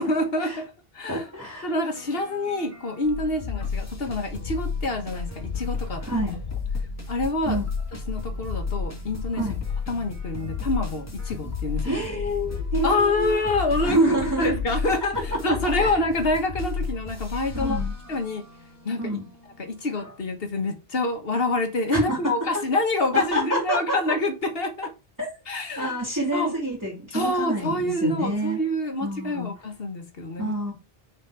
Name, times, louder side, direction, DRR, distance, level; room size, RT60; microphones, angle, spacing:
voice 1, 0.0-1.3 1.6-6.3 7.1-7.6 8.1-9.5 9.9-12.0 12.8-14.0 14.4-17.8 18.1-18.4 18.8-19.2 19.6-24.9 25.5-25.9 26.3-26.5 27.1-30.6, left 2 dB, 65° left, 1.6 m, -27 dB
sound 1, 1.0-20.2, equal, 15° left, 1.3 m, -40 dB
voice 2, 1.1-1.7 6.0-6.3 7.5-7.6 9.3-9.5 11.8-13.4 13.8-14.5 15.5-15.9 17.5-17.9 19.0-19.2 21.9-22.3 23.1-24.2 25.2-25.3 25.8-28.6 29.0-29.5 30.4-30.7, right 1 dB, 20° right, 2.3 m, -27 dB
sound 2, 3.0-18.0, left 6 dB, 50° left, 0.6 m, -32 dB
6.0 x 4.3 x 4.7 m
omnidirectional pair, 1.1 m